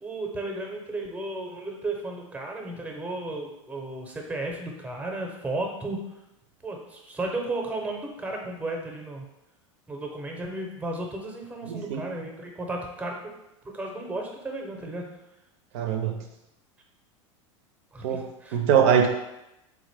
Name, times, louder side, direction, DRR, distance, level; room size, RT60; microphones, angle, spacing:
voice 1, 0.0-6.0 6.6-9.3 9.9-13.4 13.6-15.1 17.9-18.6, right 2 dB, 10° right, 1 dB, 0.7 m, -34 dB
voice 2, 11.7-12.0 15.7-16.2 18.0-18.3 18.5-19.1, right 8 dB, 65° right, 4 dB, 0.5 m, -22 dB
3.5 x 2.5 x 3.4 m, 0.91 s
hypercardioid pair, 95°, 16 cm